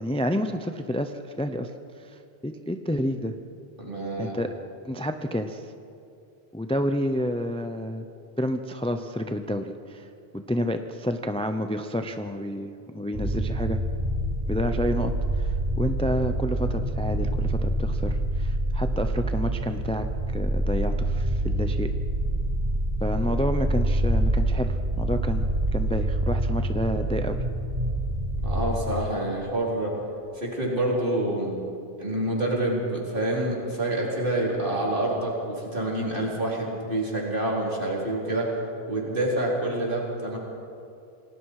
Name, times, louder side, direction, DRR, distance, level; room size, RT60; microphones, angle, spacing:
voice 1, 0.0-1.7 2.4-3.3 4.2-4.5 4.9-5.6 6.5-8.0 8.4-10.1 10.3-13.8 14.5-15.1 15.4-20.1 20.3-21.9 23.0-27.4, equal, 5° left, 7 dB, 0.7 m, -29 dB
voice 2, 3.8-4.4 28.4-29.9 30.3-31.6 32.0-38.5 38.9-40.4, right 1 dB, 55° right, -4 dB, 4.6 m, -27 dB
sound 1, 13.1-28.7, right 1 dB, 30° right, 5.5 m, -26 dB
28.0 x 19.0 x 4.9 m, 2.6 s
omnidirectional pair, 1.1 m